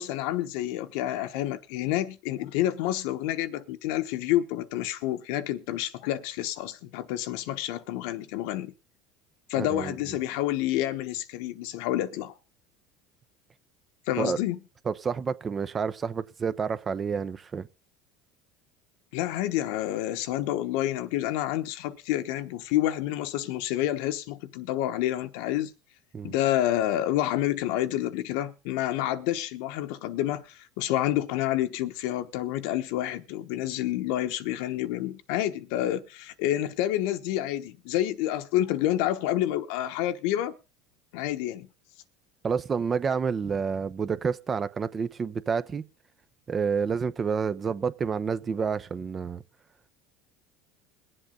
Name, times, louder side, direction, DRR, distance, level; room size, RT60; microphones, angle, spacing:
voice 1, 0.0-8.7 9.5-12.3 14.1-14.6 19.1-25.7 26.2-40.5 41.1-41.7, left 13 dB, 75° left, 1.0 m, -28 dB
voice 2, 9.6-9.9 14.2-14.4 14.9-17.7 26.1-26.3 42.4-45.8 46.5-49.4, right 6 dB, 30° right, 0.7 m, -29 dB
22.0 x 7.8 x 3.8 m
supercardioid pair, 95°, 0 cm